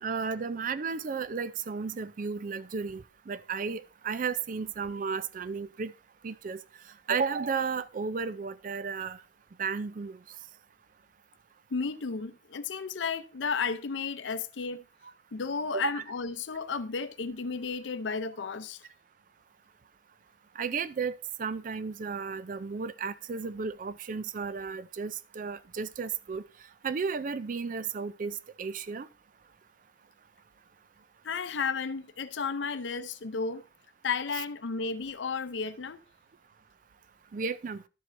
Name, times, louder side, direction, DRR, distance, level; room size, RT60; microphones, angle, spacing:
voice 1, 0.0-5.9 6.2-6.6 7.1-9.2 9.6-10.2 15.7-16.0 20.6-26.4 26.8-29.1 37.3-37.8, right 5 dB, 45° right, 0.4 m, -33 dB
voice 2, 11.7-14.8 15.3-18.8 31.2-33.6 34.0-36.0, left 5 dB, 75° left, 0.6 m, -33 dB
12.0 x 7.5 x 2.6 m
head